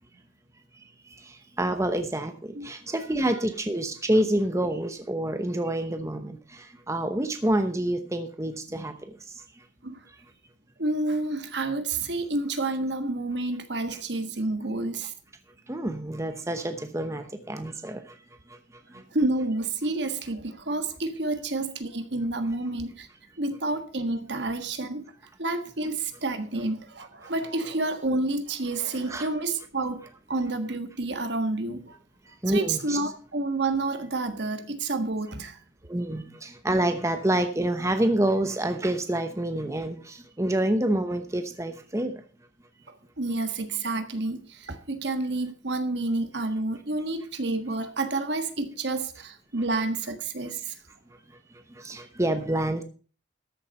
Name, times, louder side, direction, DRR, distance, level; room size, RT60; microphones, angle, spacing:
voice 1, 1.6-9.1 15.7-18.0 29.1-29.3 32.4-33.0 35.9-42.1 51.8-52.8, right 1 dB, 15° right, 0.9 m, -27 dB
voice 2, 10.8-15.1 18.9-23.1 23.4-25.1 25.4-30.0 30.3-32.0 32.5-35.6 42.9-50.8, right 2 dB, 65° right, 1.5 m, -29 dB
13.5 x 7.2 x 5.5 m
head